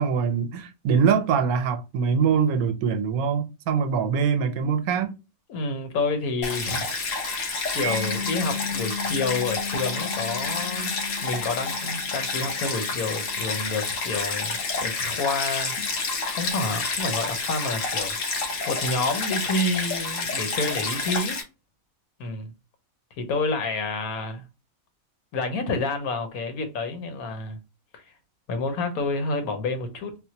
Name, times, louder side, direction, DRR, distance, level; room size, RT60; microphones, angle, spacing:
voice 1, 0.0-5.1, right 6 dB, 85° right, 1.1 m, -23 dB
voice 2, 5.5-7.4 7.7-11.0 11.2-21.4 22.2-22.5 23.2-24.4 25.3-27.6 27.9-28.0 28.5-30.2, left 3 dB, 90° left, 1.3 m, -29 dB
Stream, 6.4-21.4, left 4 dB, 65° left, 1.1 m, -29 dB
Mallet percussion, 7.8-14.6, left 4 dB, 65° right, 0.8 m, -36 dB
4.2 x 2.1 x 2.8 m
omnidirectional pair, 1.5 m